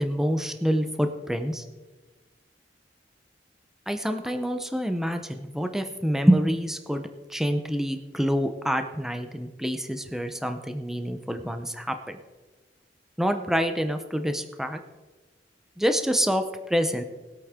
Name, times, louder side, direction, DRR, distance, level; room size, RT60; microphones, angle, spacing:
voice 1, 0.0-1.6 3.9-12.2 13.2-14.8 15.8-17.0, equal, ahead, 7 dB, 0.7 m, -26 dB
20.0 x 8.4 x 3.7 m, 1.2 s
head